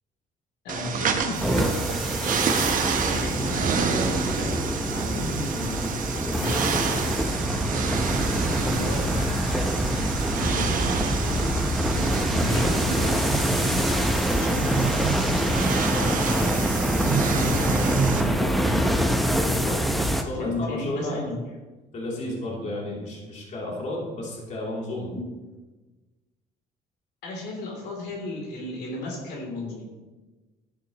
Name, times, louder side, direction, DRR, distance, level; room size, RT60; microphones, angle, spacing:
voice 1, 0.6-2.4 3.0-4.5 4.9-7.0 8.3-10.8 11.2-11.5 12.3-16.8 17.3-18.9 19.4-19.6 20.4-21.3 25.1-25.2 27.2-29.9, left 2 dB, 80° left, -1 dB, 3.1 m, -34 dB
sound 1, 0.7-18.2, right 6 dB, 50° right, 1.1 m, -29 dB
sound 2, 1.4-20.2, equal, ahead, 0.8 m, -25 dB
voice 2, 17.4-17.8 19.5-19.8 20.1-21.2 21.9-25.1, left 1 dB, 45° left, -3 dB, 3.1 m, -33 dB
11.5 x 9.9 x 3.0 m, 1.2 s
cardioid pair, 110°, 17 cm